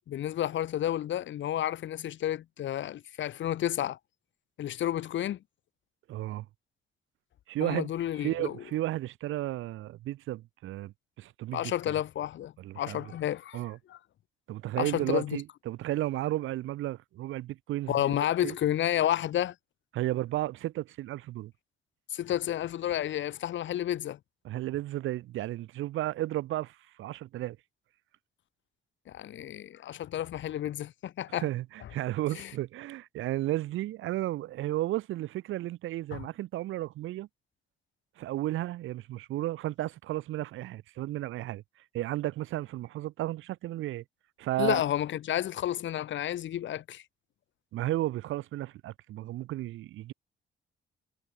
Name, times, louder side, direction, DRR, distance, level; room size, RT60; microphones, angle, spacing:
voice 1, 0.1-4.0 4.6-5.4 7.6-8.5 11.5-13.6 13.9-14.0 14.8-15.4 17.9-19.5 22.1-24.2 29.1-31.5 32.4-32.5 36.1-36.2 44.6-47.0, left 12 dB, 70° left, 1.0 m, -31 dB
voice 2, 6.1-6.5 7.5-7.9 8.2-11.9 12.6-13.1 13.5-13.8 14.5-18.5 19.9-21.5 24.4-27.6 31.3-37.3 38.2-41.6 41.9-44.0 44.4-44.8 47.7-50.1, right 15 dB, 80° right, 0.7 m, -33 dB
cardioid pair, 75°, 20 cm